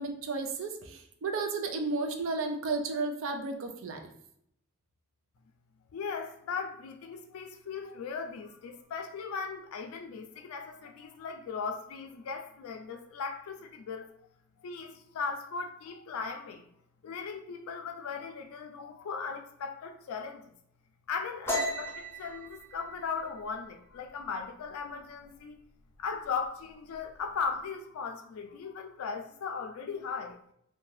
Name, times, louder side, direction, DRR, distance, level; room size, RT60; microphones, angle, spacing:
voice 1, 0.0-4.0, right 3 dB, 65° right, 5 dB, 0.4 m, -33 dB
voice 2, 5.9-14.1 14.6-16.6 17.0-20.5 21.1-25.6 26.0-30.4, left 5 dB, 80° left, 4 dB, 0.4 m, -38 dB
sound 1, 21.5-24.9 25.2-25.6 25.9-26.5 26.7-27.5, equal, 10° left, 0.4 m, -36 dB
2.6 x 2.2 x 3.1 m, 0.70 s
head